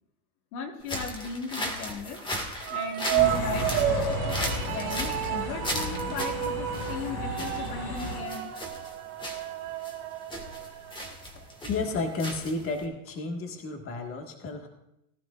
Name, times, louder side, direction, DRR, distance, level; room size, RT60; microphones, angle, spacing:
voice 1, 0.5-2.2 2.7-4.2 4.7-8.5, left 4 dB, 70° left, 4 dB, 1.8 m, -37 dB
sound 1, 0.8-12.9, equal, 10° left, 1.9 m, -37 dB
sound 2, 2.6-11.1, right 11 dB, 50° right, 1.8 m, -31 dB
sound 3, 3.1-8.2, left 2 dB, 50° left, 5.3 m, -34 dB
voice 2, 11.7-14.7, left 3 dB, 30° left, 3 dB, 1.7 m, -32 dB
19.0 x 12.0 x 2.5 m, 0.83 s
supercardioid pair, 130°, 45 cm